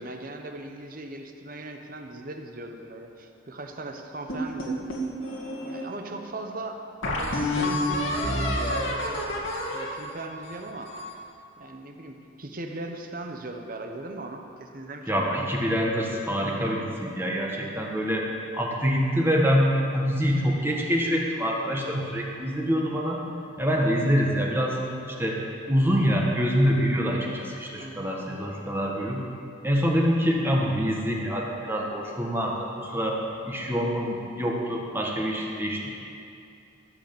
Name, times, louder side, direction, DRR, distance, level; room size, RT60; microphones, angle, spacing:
voice 1, 0.0-4.9 5.6-6.8 7.1-9.3 9.6-10.9 11.6-15.5 27.8-28.1, right 2 dB, 45° right, 4 dB, 1.1 m, -38 dB
sound 1, 4.3-5.8 6.4-6.5 7.0-11.2, left 1 dB, 85° left, 2.1 m, -29 dB
voice 2, 15.1-18.3 18.5-23.2 23.6-24.8 25.1-25.4 25.7-29.2 29.6-33.2 33.4-35.9, equal, 10° right, -2 dB, 1.4 m, -25 dB
14.0 x 8.0 x 7.0 m, 2.5 s
head